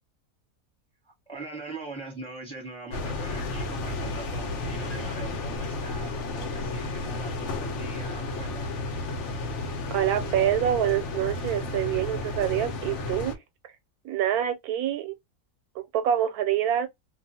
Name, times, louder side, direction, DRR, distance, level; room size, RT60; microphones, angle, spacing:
voice 1, 1.0-8.7, right 3 dB, 5° left, 1.0 m, -42 dB
sound 1, 2.9-13.3, left 2 dB, 65° left, 0.9 m, -32 dB
voice 2, 9.9-13.4 14.0-15.1 15.8-16.9, right 10 dB, 85° right, 1.1 m, -26 dB
2.4 x 2.2 x 2.7 m
omnidirectional pair, 1.5 m